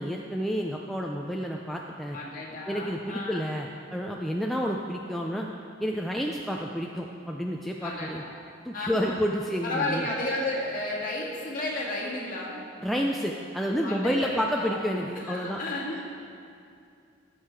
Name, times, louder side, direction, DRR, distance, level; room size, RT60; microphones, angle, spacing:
voice 1, 0.0-2.2 2.7-5.5 5.8-8.2 8.6-10.1 12.8-15.6, equal, ahead, -1 dB, 0.4 m, -30 dB
voice 2, 2.1-3.4 7.8-8.3 8.7-9.2 9.6-12.6 13.8-14.8 15.2-16.0, left 2 dB, 40° left, -4 dB, 2.0 m, -32 dB
17.0 x 6.5 x 4.7 m, 2.5 s
head